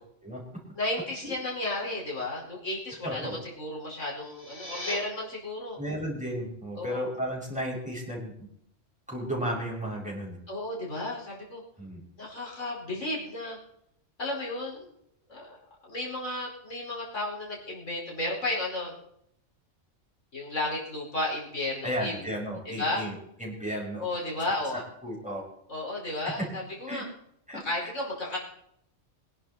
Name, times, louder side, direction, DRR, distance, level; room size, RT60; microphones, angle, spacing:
voice 1, 0.8-5.8 6.8-7.0 10.5-11.6 12.2-13.6 14.2-14.9 15.3-15.6 15.8-18.9 20.3-22.3 22.8-23.0 24.0-24.8 25.7-27.1 27.5-28.4, left 2 dB, 80° left, -4 dB, 5.4 m, -33 dB
voice 2, 3.0-3.4 5.8-8.3 9.1-10.4 11.8-12.0 21.8-24.0 25.0-25.4 26.2-26.5 26.9-27.0 27.5-27.9, equal, 5° right, -3 dB, 5.8 m, -34 dB
sound 1, 4.2-5.0, left 1 dB, 40° left, 3.1 m, -38 dB
23.5 x 11.0 x 4.2 m, 0.73 s
omnidirectional pair, 1.3 m